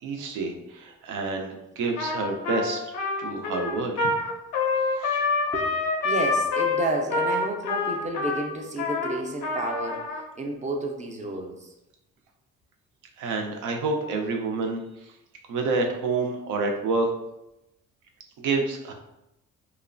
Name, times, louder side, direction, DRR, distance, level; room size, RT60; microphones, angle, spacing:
voice 1, 0.0-2.9 3.2-4.1 4.9-5.2 13.2-15.1 15.5-17.1 18.4-18.9, right 3 dB, 80° right, 3 dB, 0.5 m, -28 dB
Trumpet, 2.0-10.2, left 3 dB, 90° left, 0.5 m, -27 dB
voice 2, 6.0-11.7, right 1 dB, 25° right, 2 dB, 0.4 m, -31 dB
2.9 x 2.0 x 2.5 m, 0.91 s
cardioid pair, 90°, 30 cm